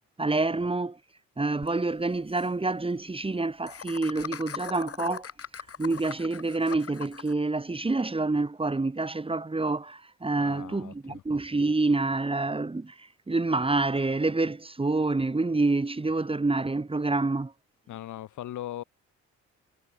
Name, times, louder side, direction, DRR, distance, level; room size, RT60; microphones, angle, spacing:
voice 1, 0.2-1.0 1.4-5.3 5.8-12.9 13.3-17.5, right 3 dB, 20° right, 2.7 m, -27 dB
Laughter, 1.6-1.7 2.0-2.1 2.3-2.5 3.7-7.3, left 7 dB, 50° left, 7.1 m, -40 dB
voice 2, 10.4-11.2 17.9-18.8, left 12 dB, 75° left, 4.3 m, -39 dB
cardioid pair, 90°, 30 cm